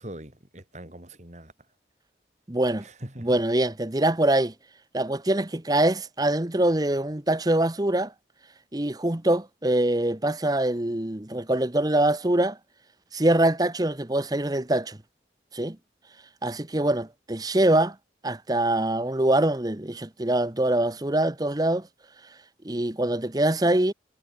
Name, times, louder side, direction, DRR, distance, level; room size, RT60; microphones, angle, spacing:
voice 1, 0.0-1.5 2.8-3.4, right 1 dB, 40° right, 3.6 m, -42 dB
voice 2, 2.5-2.8 3.2-4.5 4.9-8.1 8.7-12.6 13.1-15.0 15.5-15.8 16.4-18.0 18.2-21.9 22.6-23.9, right 1 dB, 20° right, 1.0 m, -24 dB
head